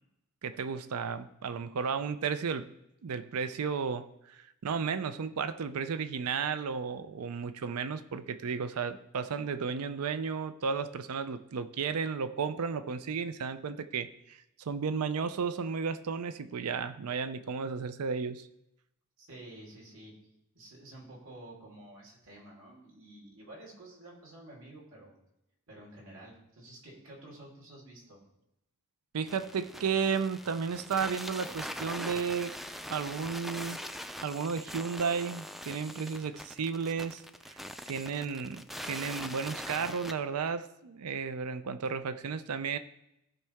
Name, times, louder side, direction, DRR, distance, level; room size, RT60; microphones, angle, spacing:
voice 1, 0.4-2.7 3.0-18.5 29.1-32.6 32.9-33.8 34.2-37.6 37.9-42.8, right 5 dB, 90° right, 12 dB, 0.5 m, -33 dB
voice 2, 19.2-20.1 20.5-25.1 25.7-28.2, right 1 dB, 65° right, -3 dB, 3.1 m, -50 dB
sound 1, 29.3-40.1, equal, ahead, 0.3 m, -42 dB
15.0 x 5.5 x 3.5 m, 0.84 s
head